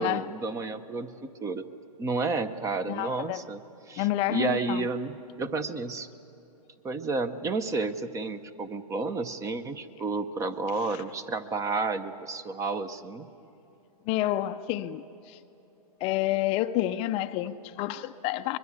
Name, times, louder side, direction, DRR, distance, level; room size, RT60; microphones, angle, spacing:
voice 1, 0.0-1.6 2.0-3.6 3.9-6.1 6.8-13.3, right 3 dB, 15° right, 13 dB, 0.8 m, -31 dB
voice 2, 2.9-3.4 4.0-4.9 10.8-11.0 14.1-15.4 16.0-18.6, left 14 dB, 30° left, 9 dB, 0.6 m, -29 dB
24.0 x 22.0 x 8.3 m, 2.9 s
hypercardioid pair, 130°, 20 cm